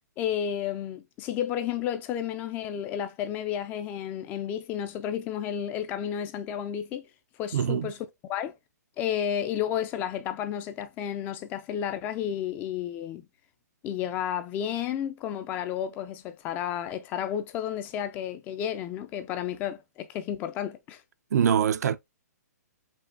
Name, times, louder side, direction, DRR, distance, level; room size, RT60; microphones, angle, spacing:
voice 1, 0.2-7.1 7.4-8.5 9.0-13.3 13.8-21.0, left 9 dB, 20° left, 0.3 m, -32 dB
voice 2, 7.5-7.9 21.3-22.0, right 8 dB, 65° right, 0.4 m, -23 dB
5.2 x 2.3 x 2.5 m
hypercardioid pair, 145°, 9 cm